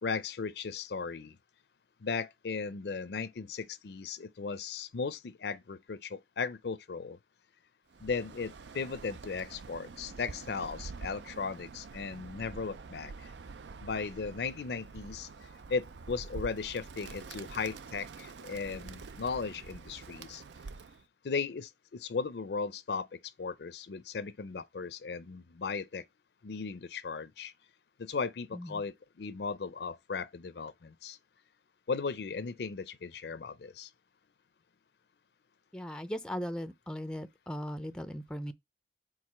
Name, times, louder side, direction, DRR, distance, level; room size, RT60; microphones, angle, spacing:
voice 1, 0.0-1.4 2.0-7.2 8.0-13.3 13.8-15.3 15.7-20.4 21.2-26.0 26.4-27.5 28.0-31.2 31.9-33.9, left 5 dB, 70° left, 0.5 m, -37 dB
Bird, 7.9-21.0, right 4 dB, 85° right, 0.5 m, -47 dB
voice 2, 35.7-38.5, equal, 5° left, 0.4 m, -38 dB
4.8 x 3.8 x 5.6 m
head